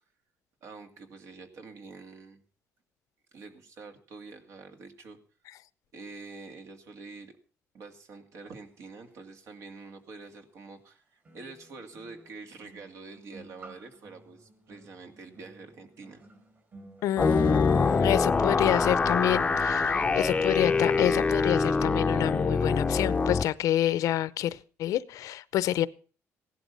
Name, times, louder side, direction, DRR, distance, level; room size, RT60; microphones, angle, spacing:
voice 1, 0.6-2.4 3.3-5.2 5.9-7.3 7.7-16.2, right 4 dB, 60° right, 6 dB, 2.4 m, -46 dB
sound 1, 9.9-10.0 11.2-22.3 22.6-22.9, right 2 dB, 40° right, 5.7 m, -53 dB
voice 2, 17.0-25.9, left 12 dB, 80° left, 17 dB, 0.7 m, -28 dB
sound 2, 17.2-23.4, left 4 dB, 20° left, 0.7 m, -25 dB
16.5 x 11.5 x 5.5 m, 0.38 s
cardioid pair, 140°, 6 cm